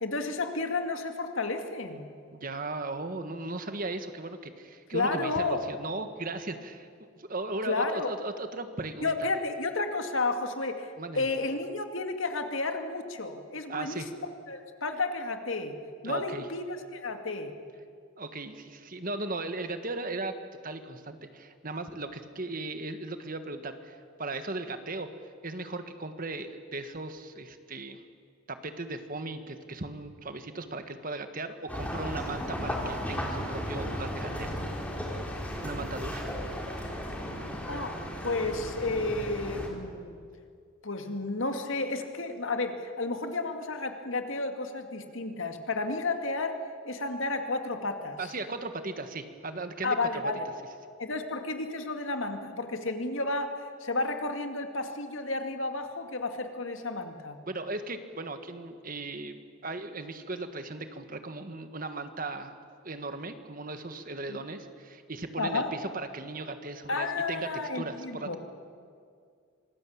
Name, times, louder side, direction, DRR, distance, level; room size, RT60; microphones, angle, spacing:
voice 1, 0.0-2.1 4.9-5.6 7.7-8.1 9.0-15.8 16.0-17.5 37.7-38.0 38.2-40.2 40.8-46.6 46.8-48.2 49.8-50.5 51.0-57.4 64.3-64.4 65.4-65.7 66.9-68.4, left 3 dB, 70° left, 6 dB, 2.2 m, -32 dB
voice 2, 2.3-6.9 7.1-9.1 11.0-11.3 13.7-14.1 16.0-16.5 18.2-20.3 20.6-25.1 25.4-28.0 28.5-34.5 35.6-36.2 48.2-50.3 57.4-59.4 59.6-62.5 62.8-68.4, right 2 dB, 40° right, 9 dB, 1.5 m, -37 dB
sound 1, 31.7-39.7, equal, 5° left, 3.4 m, -35 dB
26.0 x 20.0 x 8.7 m, 2.2 s
head